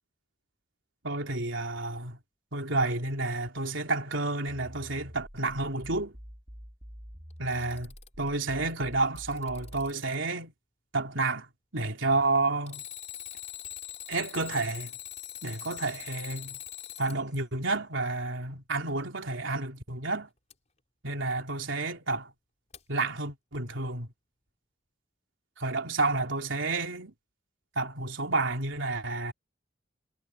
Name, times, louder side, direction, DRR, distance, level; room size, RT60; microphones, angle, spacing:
voice 1, 1.0-2.2 2.5-6.1 7.4-10.5 10.9-11.5 11.7-12.8 14.1-14.9 15.4-16.6 17.0-20.3 21.0-22.3 22.9-24.1 25.6-27.1 27.8-29.3, right 3 dB, 80° right, 3.5 m, -30 dB
sound 1, 4.5-9.9, equal, 30° right, 3.2 m, -47 dB
Alarm, 7.3-8.3 8.9-10.3 12.7-17.2 20.5-20.6 22.7-22.8, left 11 dB, 40° left, 5.1 m, -42 dB
head